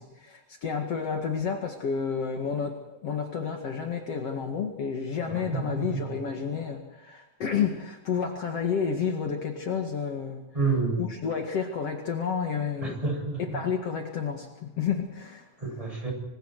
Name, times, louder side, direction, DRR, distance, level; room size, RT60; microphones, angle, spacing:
voice 1, 0.0-10.4 11.0-13.0 13.4-15.5, left 6 dB, 55° left, 3 dB, 2.9 m, -30 dB
voice 2, 5.3-6.1 10.5-11.0 12.8-13.6 15.6-16.1, right 4 dB, 10° right, 1 dB, 8.0 m, -29 dB
27.5 x 25.0 x 4.8 m, 0.95 s
omnidirectional pair, 3.3 m